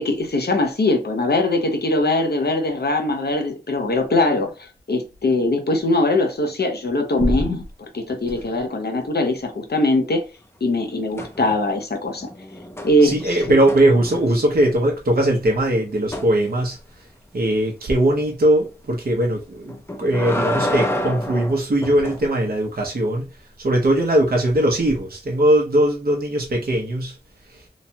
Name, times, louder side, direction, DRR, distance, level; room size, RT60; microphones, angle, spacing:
voice 1, 0.0-4.5 4.9-10.2 10.6-12.3 12.8-13.6, left 2 dB, 70° left, 0.7 m, -21 dB
sound 1, 11.2-11.8 12.1-14.5 16.1-16.3 19.7-22.2 24.5-24.6, left 1 dB, 15° left, 0.5 m, -28 dB
voice 2, 13.0-16.8 17.3-23.3 23.6-27.2 27.5-27.7, right 1 dB, 60° right, 0.7 m, -20 dB
3.0 x 2.2 x 2.7 m
wide cardioid pair, 65°, 17 cm